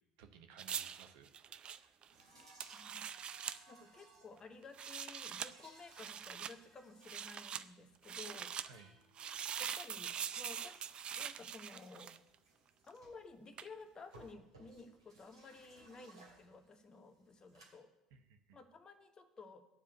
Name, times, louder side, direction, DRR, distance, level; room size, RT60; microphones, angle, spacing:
voice 1, 0.2-2.0 8.6-8.9 18.1-18.6, right 6 dB, 65° right, 6 dB, 1.1 m, -60 dB
sound 1, 0.6-3.6 4.6-5.5 5.9-6.5 7.0-7.6 8.0-8.7 9.2-12.4 13.6-13.7, right 8 dB, 40° right, 0.5 m, -43 dB
sound 2, 2.1-17.7, right 3 dB, 90° right, 2.5 m, -64 dB
voice 2, 2.7-3.1 3.7-8.5 9.6-10.8 11.2-12.1 12.8-17.9 18.5-19.6, left 3 dB, 30° left, 8 dB, 1.2 m, -54 dB
9.8 x 4.9 x 8.0 m, 0.88 s
figure-of-eight pair, 65°, 3 cm